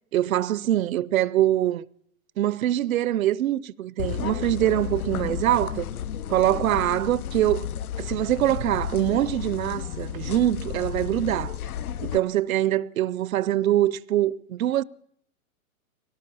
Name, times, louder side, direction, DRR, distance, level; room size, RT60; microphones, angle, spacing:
voice 1, 0.1-1.8 2.4-5.9 6.3-7.7 8.0-11.6 12.0-14.8, right 13 dB, 70° right, 0.7 m, -24 dB
sound 1, 4.0-12.2, left 10 dB, 85° left, 1.0 m, -32 dB
21.5 x 18.0 x 6.9 m
hypercardioid pair, 160°, 42 cm